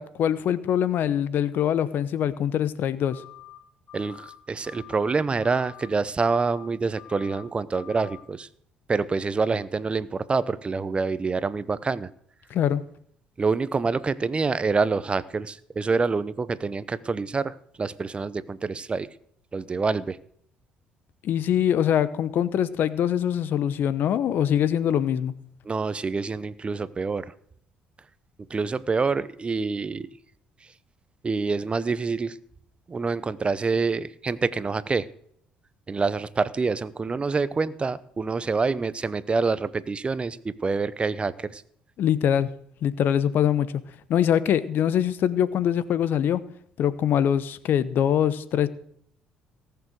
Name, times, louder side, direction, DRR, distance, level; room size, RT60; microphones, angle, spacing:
voice 1, 0.0-3.2 12.5-12.8 21.2-25.3 42.0-42.5 42.8-43.8 44.1-46.4 46.8-48.7, left 9 dB, 60° left, 16 dB, 0.9 m, -23 dB
sound 1, 3.1-3.6 3.9-4.4 4.6-5.1 5.4-5.9 6.2-6.7 7.0-7.4 7.7-8.2, left 14 dB, 40° left, 2.1 m, -46 dB
voice 2, 3.9-8.5 8.9-12.1 13.4-19.1 19.5-20.2 25.6-27.3 28.5-30.1 31.2-32.4 32.9-35.1 35.9-41.6, right 4 dB, 30° right, 17 dB, 0.8 m, -26 dB
18.0 x 6.9 x 6.4 m, 0.66 s
supercardioid pair, 70°, 4 cm